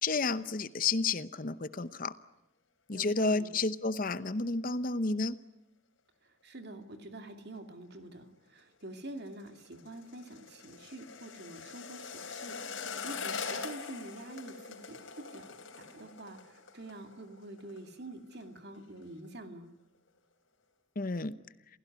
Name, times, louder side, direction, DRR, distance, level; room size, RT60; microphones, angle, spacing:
voice 1, 0.0-2.1 2.9-5.4 21.0-21.3, left 3 dB, 45° left, 14 dB, 0.8 m, -31 dB
voice 2, 2.9-3.5 6.2-19.7, right 1 dB, 55° right, 6 dB, 2.6 m, -47 dB
sound 1, 8.8-17.9 18.1-18.5 18.7-19.3 19.6-19.7, left 5 dB, 75° left, 3.7 m, -43 dB
28.0 x 16.5 x 9.4 m, 0.92 s
head